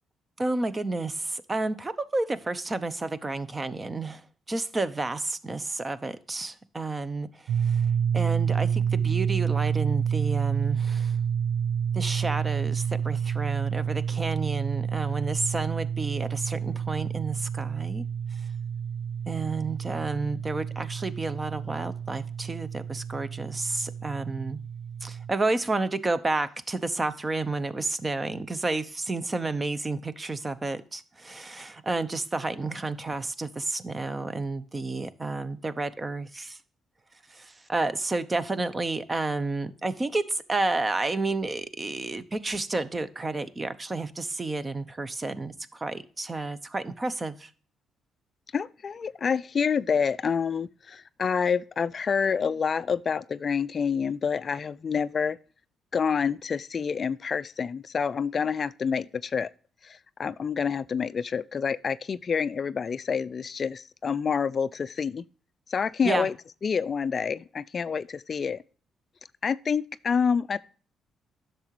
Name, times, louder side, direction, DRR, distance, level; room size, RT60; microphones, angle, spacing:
voice 1, 0.4-4.2 4.5-7.9 8.1-11.2 11.9-18.0 19.3-24.6 25.0-36.6 37.3-47.5 66.0-66.3, right 3 dB, 25° right, 0.7 m, -31 dB
sound 1, 7.5-25.3, right 7 dB, 75° right, 0.3 m, -29 dB
voice 2, 48.5-55.4 55.9-59.5 60.2-65.2 65.7-66.3 66.6-68.6 69.4-70.6, left 6 dB, 45° left, 0.3 m, -27 dB
10.5 x 6.7 x 3.0 m
cardioid pair, 90°, 0 cm